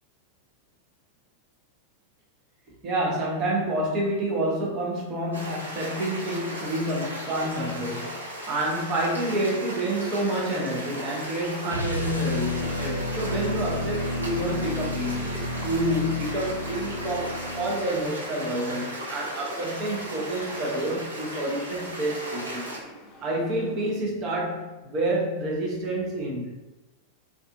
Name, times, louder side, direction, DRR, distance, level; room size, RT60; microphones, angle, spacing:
voice 1, 2.8-22.7 23.2-26.5, right 1 dB, 35° right, -2 dB, 0.7 m, -28 dB
sound 1, 5.3-22.8, right 1 dB, 75° right, 0.7 m, -36 dB
sound 2, 11.7-17.8, left 1 dB, 85° left, 0.3 m, -32 dB
sound 3, 15.2-23.9, equal, 15° left, 0.9 m, -47 dB
2.4 x 2.4 x 2.5 m, 1.1 s
figure-of-eight pair, 90°, 0 cm